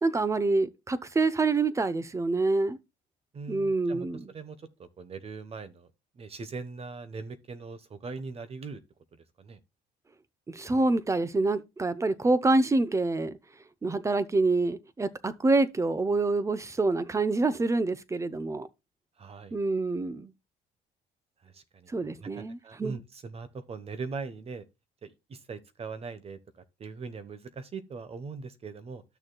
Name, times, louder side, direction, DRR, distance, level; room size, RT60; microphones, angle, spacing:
voice 1, 0.0-2.8 3.5-4.3 10.5-13.4 13.8-18.7 19.5-20.3 21.9-23.0, right 3 dB, 15° right, 0.8 m, -26 dB
voice 2, 3.3-5.9 6.2-8.8 9.1-9.6 19.2-19.5 21.4-24.6 25.0-26.4 26.8-29.0, right 4 dB, 35° right, 1.1 m, -41 dB
13.0 x 6.4 x 2.3 m
cardioid pair, 110°, 17 cm